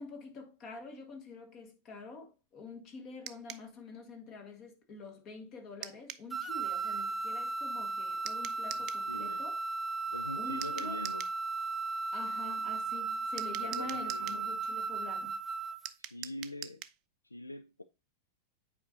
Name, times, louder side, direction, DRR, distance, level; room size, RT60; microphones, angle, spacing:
voice 1, 0.0-9.6 10.3-11.0 12.1-15.3, left 4 dB, 35° left, 1.7 m, -47 dB
sound 1, 3.3-3.7 5.8-6.3 8.3-9.1 10.6-11.4 13.4-14.4 15.9-17.0, right 12 dB, 35° right, 0.5 m, -44 dB
sound 2, 6.3-15.9, right 4 dB, 5° right, 0.8 m, -36 dB
voice 2, 8.7-9.4 10.1-11.3 13.6-14.6 16.0-16.8 17.2-17.8, left 1 dB, 85° left, 0.4 m, -43 dB
8.5 x 4.9 x 2.8 m
figure-of-eight pair, 90°, 0 cm